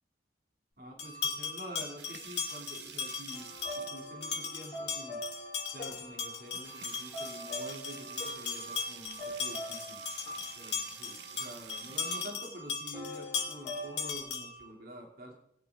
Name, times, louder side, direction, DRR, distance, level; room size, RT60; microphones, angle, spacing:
voice 1, 0.8-3.5 3.8-10.0 10.6-15.3, equal, 55° right, 0 dB, 2.5 m, -48 dB
sound 1, 1.0-14.7, left 5 dB, 80° left, 2.1 m, -38 dB
sound 2, 1.8-4.2 5.6-5.7 6.1-6.2 6.5-12.4 14.1-14.6, right 9 dB, 75° right, 0.8 m, -50 dB
sound 3, 3.3-12.2 12.9-14.1, equal, 25° left, 3.7 m, -45 dB
18.5 x 9.4 x 3.5 m, 0.74 s
head